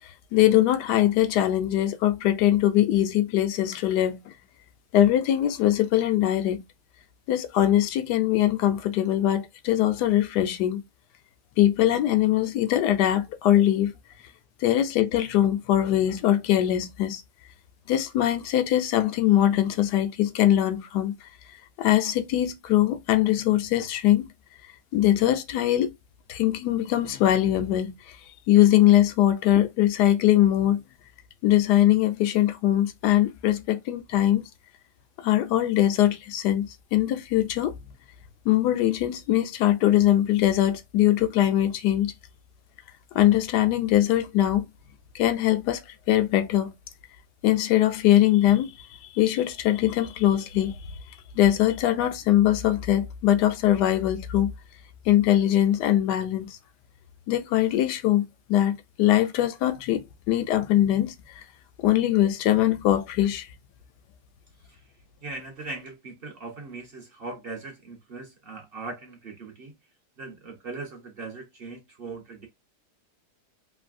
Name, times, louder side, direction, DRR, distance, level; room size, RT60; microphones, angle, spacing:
voice 1, 0.3-4.2 4.9-6.6 7.3-10.8 11.6-13.9 14.6-17.2 17.9-21.2 21.8-24.3 24.9-25.9 26.3-28.0 28.5-30.8 31.4-34.5 35.2-37.7 38.5-42.1 43.1-44.7 45.1-45.8 46.1-46.7 47.4-50.8 51.4-54.5 55.1-56.6 57.3-61.4 61.8-63.5, left 12 dB, 80° left, 1.2 m, -22 dB
voice 2, 65.2-69.7 70.2-72.5, right 3 dB, 50° right, 0.7 m, -39 dB
3.1 x 2.6 x 2.5 m
omnidirectional pair, 1.7 m